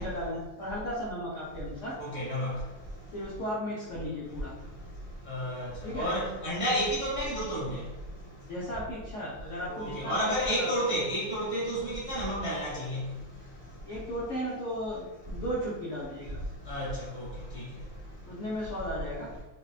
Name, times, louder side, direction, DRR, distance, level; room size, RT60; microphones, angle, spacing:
voice 1, 0.0-2.0 3.1-4.5 5.8-6.1 8.4-10.7 13.8-16.4 18.2-19.3, equal, 85° left, -8 dB, 0.6 m, -35 dB
voice 2, 2.0-2.5 5.3-5.7 5.9-7.8 9.7-13.0 16.7-17.2 17.5-17.6, equal, 40° right, -9 dB, 0.4 m, -31 dB
3.8 x 2.2 x 2.4 m, 1.1 s
omnidirectional pair, 2.2 m